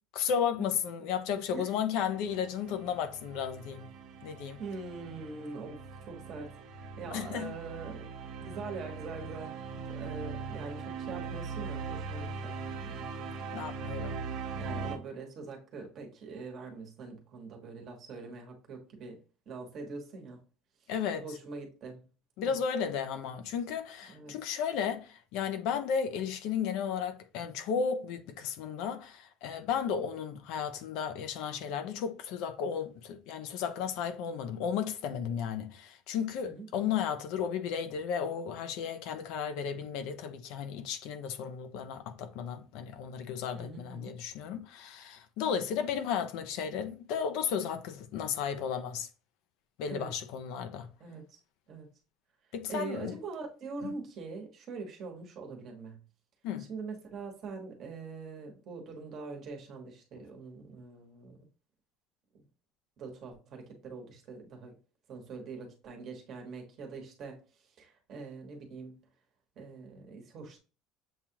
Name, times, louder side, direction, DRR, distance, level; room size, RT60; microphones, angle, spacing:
voice 1, 0.1-3.9 4.2-4.6 7.1-7.5 13.5-14.2 20.9-21.2 22.4-49.1 49.8-50.9 52.5-53.2 53.8-53.9 56.4-56.7, left 7 dB, 60° left, 0.5 m, -34 dB
sound 1, 2.1-15.0, right 4 dB, 55° right, 0.7 m, -40 dB
voice 2, 4.6-8.0 8.4-12.5 12.8-13.8 14.5-19.2 19.5-20.4 21.2-22.0 22.4-22.6 24.0-24.3 36.4-36.7 43.5-44.1 49.8-50.1 51.0-51.2 51.7-51.9 52.7-56.0 56.7-61.4 62.3-62.5 63.0-64.7 65.1-68.9 69.6-70.6, right 4 dB, 35° right, 1.2 m, -43 dB
7.2 x 2.4 x 2.8 m
cardioid pair, 170°, 0 cm